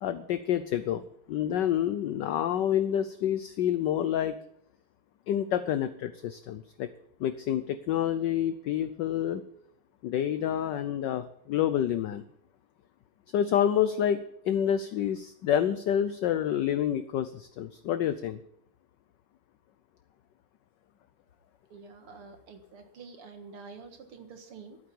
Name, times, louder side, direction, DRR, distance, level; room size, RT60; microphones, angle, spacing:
voice 1, 0.0-1.0 1.3-4.3 5.3-6.9 7.2-9.4 10.0-12.2 13.3-18.4, left 10 dB, 70° left, 11 dB, 1.1 m, -28 dB
voice 2, 21.7-24.8, right 4 dB, 85° right, 6 dB, 2.6 m, -47 dB
11.5 x 9.1 x 8.5 m, 0.73 s
omnidirectional pair, 2.4 m